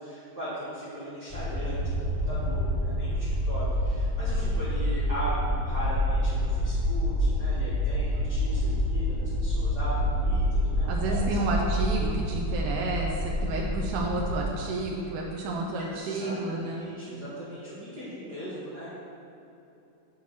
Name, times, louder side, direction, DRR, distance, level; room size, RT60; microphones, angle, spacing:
voice 1, 0.0-2.0 2.3-11.4 15.9-18.9, equal, 45° right, -11 dB, 1.6 m, -38 dB
sound 1, 1.3-14.4, equal, ahead, 0.6 m, -27 dB
voice 2, 10.9-16.8, right 2 dB, 80° right, -2 dB, 2.2 m, -31 dB
6.4 x 5.7 x 5.8 m, 2.9 s
omnidirectional pair, 3.6 m